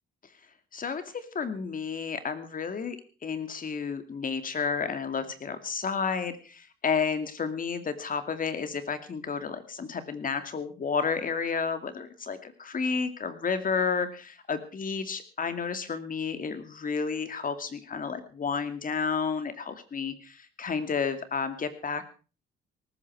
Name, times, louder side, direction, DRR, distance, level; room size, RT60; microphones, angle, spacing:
voice 1, 0.7-3.0 3.2-22.1, left 5 dB, 45° left, 10 dB, 2.5 m, -31 dB
18.5 x 14.5 x 4.7 m, 0.37 s
cardioid pair, 90°, 20 cm